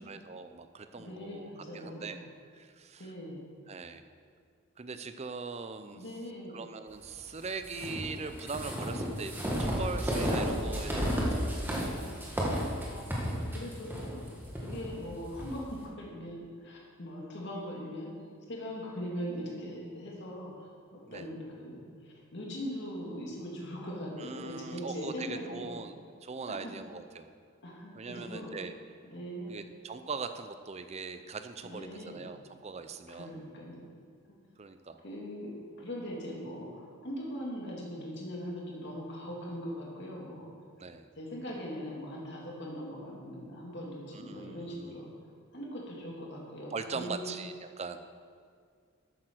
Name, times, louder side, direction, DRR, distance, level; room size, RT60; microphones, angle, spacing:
voice 1, 0.0-2.2 2.5-3.1 3.7-4.0 4.8-6.0 6.5-11.5 21.1-21.3 24.2-25.9 26.2-27.3 28.0-28.7 29.5-33.3 34.6-35.0 40.8-41.1 44.1-45.0 46.7-48.0, right 4 dB, 30° right, 9 dB, 0.5 m, -41 dB
voice 2, 0.9-2.1 3.0-3.5 5.9-6.6 12.8-14.1 14.6-25.8 26.5-26.7 27.6-28.5 29.0-29.5 31.6-32.3 33.2-33.9 35.0-35.5 35.8-40.5 41.2-45.1 45.5-47.3, equal, 55° left, -3 dB, 2.4 m, -41 dB
sound 1, 7.6-15.5, equal, 10° right, 1.6 m, -32 dB
12.5 x 8.9 x 4.5 m, 2.1 s
head